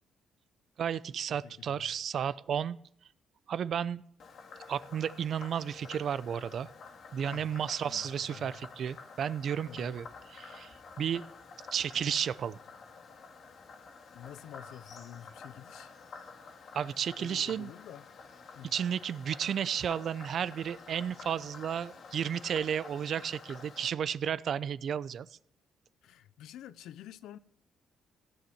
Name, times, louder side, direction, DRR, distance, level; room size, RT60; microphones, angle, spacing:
voice 1, 0.8-2.8 3.5-4.0 4.7-6.7 7.1-10.1 10.3-11.2 11.7-12.6 16.7-17.7 18.7-25.3, right 8 dB, 60° right, 0.6 m, -33 dB
voice 2, 1.3-1.9 7.2-7.5 7.8-8.5 9.6-10.0 14.1-15.9 17.2-18.1 18.5-18.7 26.0-27.4, left 11 dB, 85° left, 0.7 m, -49 dB
Frog, 4.2-23.9, left 4 dB, 60° left, 2.2 m, -50 dB
16.0 x 10.5 x 7.8 m
cardioid pair, 90°, 0 cm